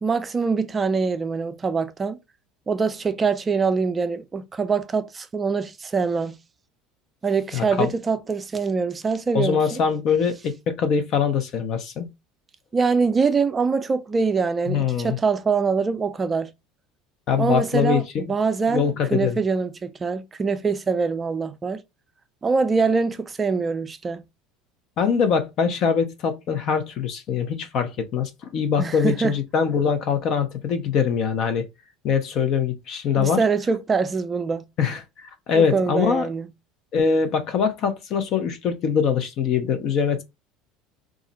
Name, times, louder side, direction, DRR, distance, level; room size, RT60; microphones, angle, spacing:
voice 1, 0.0-2.2 2.7-6.4 7.2-9.8 12.7-16.5 17.4-21.8 22.4-24.2 28.8-29.3 33.2-34.7 35.6-36.5, right 5 dB, 25° right, 0.4 m, -24 dB
voice 2, 7.5-7.9 9.3-12.1 14.7-15.2 17.3-18.3 18.7-19.4 25.0-31.7 32.0-33.4 34.8-36.3 36.9-40.2, left 6 dB, 55° left, 0.7 m, -23 dB
2.4 x 2.0 x 3.9 m
hypercardioid pair, 85°, 0 cm